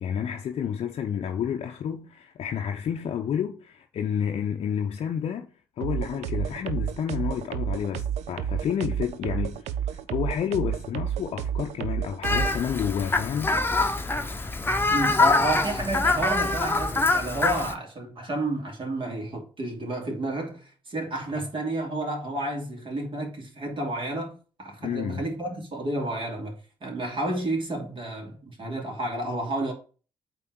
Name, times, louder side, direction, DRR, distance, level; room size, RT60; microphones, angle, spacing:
voice 1, 0.0-5.5 5.8-13.6 24.8-25.2, left 8 dB, 50° left, 0.7 m, -30 dB
sound 1, 5.8-12.6, right 9 dB, 60° right, 0.6 m, -30 dB
Fowl, 12.2-17.7, left 3 dB, 15° left, 1.0 m, -24 dB
voice 2, 14.9-29.7, right 1 dB, 40° right, 2.8 m, -31 dB
8.4 x 3.4 x 4.6 m
figure-of-eight pair, 45°, 13 cm